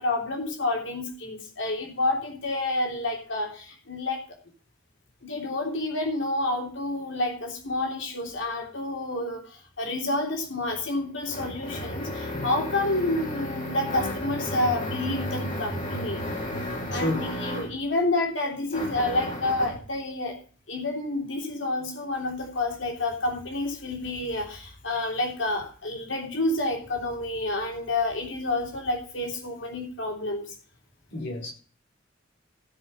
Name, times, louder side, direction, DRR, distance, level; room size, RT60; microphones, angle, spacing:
voice 1, 0.0-4.2 5.2-16.2 16.9-20.4 20.7-30.5, left 2 dB, 80° left, 3.2 m, -29 dB
sound 1, 10.6-17.8 18.7-19.8, left 1 dB, 45° left, 4.0 m, -33 dB
voice 2, 16.9-17.2 31.1-31.5, left 1 dB, 65° left, 4.2 m, -30 dB
15.5 x 5.5 x 6.7 m
head